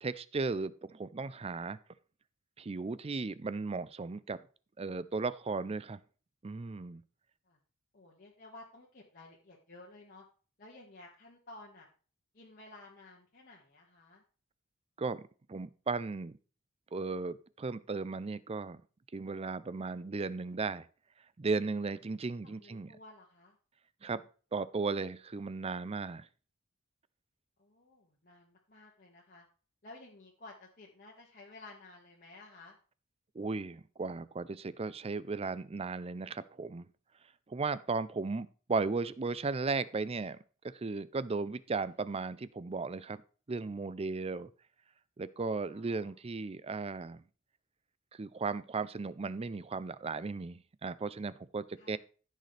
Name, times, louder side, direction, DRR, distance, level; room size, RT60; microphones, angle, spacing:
voice 1, 0.0-1.8 2.6-4.4 4.8-6.0 6.4-7.0 15.0-15.2 15.5-16.4 16.9-18.8 19.1-20.9 21.4-22.9 24.0-24.2 24.5-26.3 33.3-36.9 37.5-40.4 40.6-43.2 43.5-44.5 45.2-47.2 48.1-52.0, right 4 dB, 30° right, 16 dB, 0.4 m, -36 dB
voice 2, 7.9-10.2 10.6-11.9 12.3-14.2 22.4-23.6 27.6-29.5 29.8-32.8 45.6-46.1 51.8-52.0, left 2 dB, 40° left, -4 dB, 1.8 m, -54 dB
14.5 x 6.5 x 3.4 m, 0.39 s
head